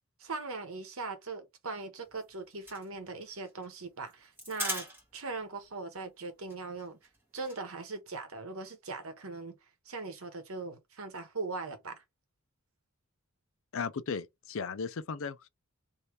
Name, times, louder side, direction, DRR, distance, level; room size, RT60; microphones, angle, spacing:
voice 1, 0.2-4.8 5.1-7.0 7.3-9.6 9.8-12.0, right 3 dB, 70° right, 1.1 m, -40 dB
sound 1, 2.0-5.4 5.6-5.7 6.0-6.2 6.5-7.6, equal, 10° right, 1.7 m, -40 dB
voice 2, 13.7-15.5, left 5 dB, 65° left, 0.5 m, -36 dB
3.3 x 2.8 x 4.6 m
head